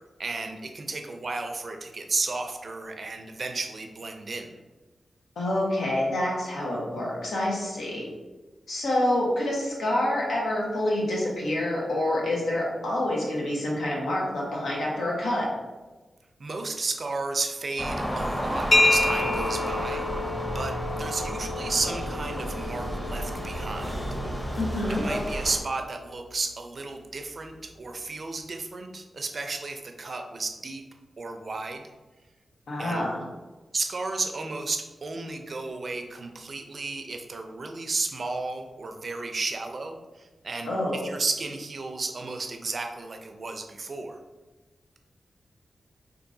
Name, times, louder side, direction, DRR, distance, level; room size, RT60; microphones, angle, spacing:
voice 1, 0.0-4.5 16.4-20.1 20.5-23.9 25.0-30.8 31.2-31.9 32.8-33.0 33.7-44.2, right 3 dB, 55° right, 5 dB, 0.4 m, -33 dB
voice 2, 5.4-8.1 8.7-15.5 24.6-25.0 32.7-33.2 40.6-41.0, left 1 dB, 90° left, -4 dB, 1.0 m, -27 dB
sound 1, 17.8-25.6, equal, 10° left, 0.7 m, -31 dB
sound 2, 18.7-26.3, left 2 dB, 50° left, 0.3 m, -30 dB
4.5 x 2.5 x 2.6 m, 1.2 s
cardioid pair, 70°, 0 cm